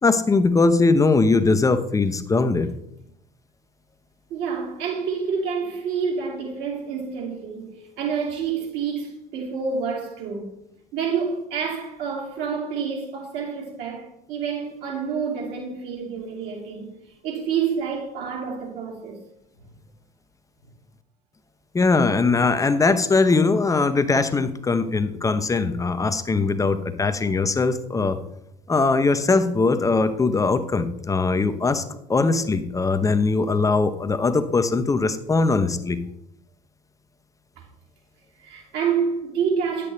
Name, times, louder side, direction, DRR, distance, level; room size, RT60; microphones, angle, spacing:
voice 1, 0.0-2.7 21.7-28.2 28.7-36.0, left 3 dB, 15° left, 0.8 m, -21 dB
voice 2, 4.3-10.5 10.9-16.9 17.2-19.2 37.6-37.7 38.4-39.9, right 6 dB, 60° right, 2.6 m, -28 dB
9.6 x 8.5 x 3.3 m
figure-of-eight pair, 65°, 20 cm